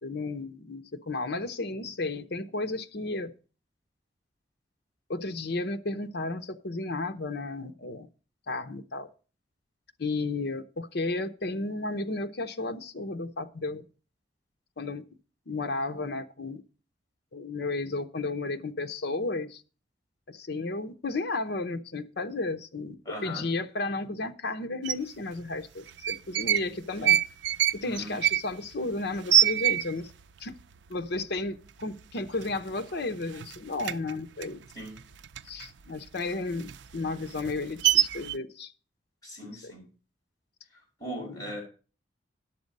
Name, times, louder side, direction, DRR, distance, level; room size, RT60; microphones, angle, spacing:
voice 1, 0.0-3.3 5.1-8.1 8.5-9.1 10.0-13.8 14.8-15.0 15.5-16.6 17.3-19.6 20.3-23.0 23.2-27.2 27.7-30.1 30.4-30.6 30.9-34.6 35.4-38.7 39.4-39.7 41.2-41.4, left 3 dB, 65° left, 0.8 m, -33 dB
voice 2, 23.0-23.4 27.8-28.2 34.7-34.9 39.2-39.8 40.7-41.6, equal, 20° left, 6.0 m, -39 dB
sound 1, 24.8-25.0 25.9-26.7 27.0-30.2 30.5-30.6 30.9-31.4 31.8-31.9 32.3-33.0 33.3-35.7 36.1-38.3, right 11 dB, 80° right, 0.4 m, -25 dB
11.0 x 7.3 x 5.2 m
head